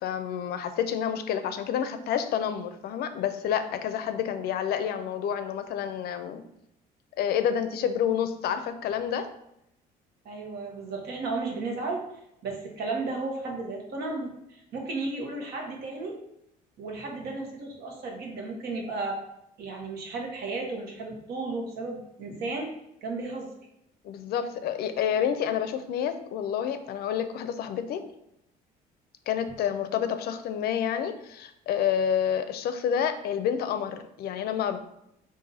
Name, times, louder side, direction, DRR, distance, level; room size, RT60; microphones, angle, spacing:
voice 1, 0.0-6.4 7.2-9.3 24.0-28.0 29.3-34.8, left 8 dB, 65° left, 10 dB, 0.4 m, -29 dB
voice 2, 10.2-12.0 12.4-16.2 16.8-19.2 19.6-22.7 23.0-23.5, right 3 dB, 70° right, 0 dB, 1.1 m, -34 dB
3.9 x 2.6 x 4.1 m, 0.80 s
cardioid pair, 110°, 17 cm